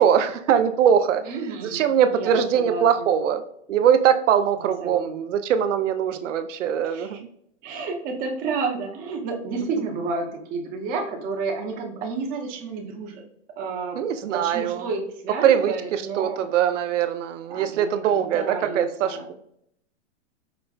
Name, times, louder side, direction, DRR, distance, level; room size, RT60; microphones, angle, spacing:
voice 1, 0.0-1.2 1.6-3.4 3.7-7.3 14.0-14.8 15.4-19.3, right 8 dB, 90° right, 9 dB, 0.5 m, -22 dB
voice 2, 1.2-3.1 4.6-5.4 6.8-7.2 7.6-13.2 13.6-14.0 14.3-16.4 17.5-19.3, right 4 dB, 25° right, 1 dB, 0.7 m, -31 dB
4.9 x 2.1 x 2.3 m, 0.72 s
hypercardioid pair, 145°, 36 cm